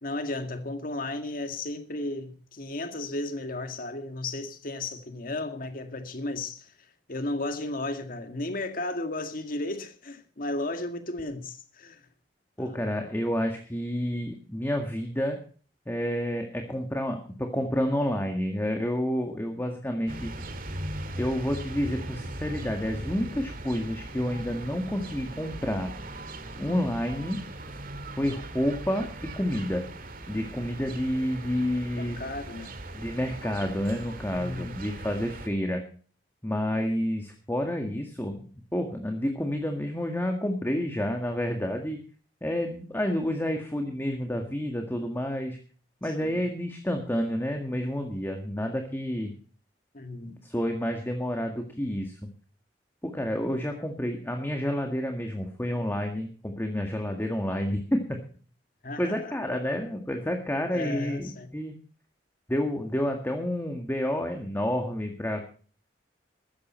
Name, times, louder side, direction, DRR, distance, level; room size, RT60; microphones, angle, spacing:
voice 1, 0.0-6.7 7.1-12.0 12.6-13.0 31.9-32.8 34.3-34.8 46.2-46.4 49.9-50.4 58.8-59.6 60.7-61.5, left 2 dB, 55° left, 2.0 m, -34 dB
voice 2, 12.6-15.4 15.9-20.3 21.2-25.9 26.6-27.4 28.2-29.9 30.3-32.2 32.9-35.8 36.4-42.0 42.4-45.6 46.0-49.3 50.3-52.2 53.0-58.2 59.0-61.7 62.5-65.5, equal, 15° left, 1.8 m, -29 dB
sound 1, 20.1-35.5, right 1 dB, 55° right, 2.0 m, -39 dB
15.0 x 14.0 x 4.5 m
head